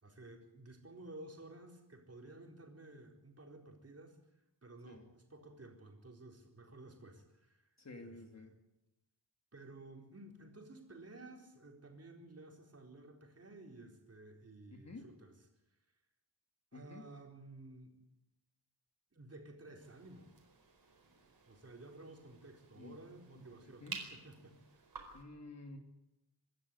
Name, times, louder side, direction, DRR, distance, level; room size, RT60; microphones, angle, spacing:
voice 1, 0.0-8.5 9.5-15.4 15.7-15.8 16.7-17.9 19.1-20.3 21.5-24.6, right 2 dB, 35° right, 1 dB, 4.3 m, -54 dB
voice 2, 7.8-8.5 14.7-15.1 16.7-17.0 22.8-23.0 23.6-24.0 25.1-25.8, left 2 dB, 40° left, 4 dB, 2.3 m, -51 dB
sound 1, 19.8-25.2, right 5 dB, 60° right, 4.7 m, -52 dB
25.5 x 13.0 x 9.4 m, 0.92 s
wide cardioid pair, 155°, 42 cm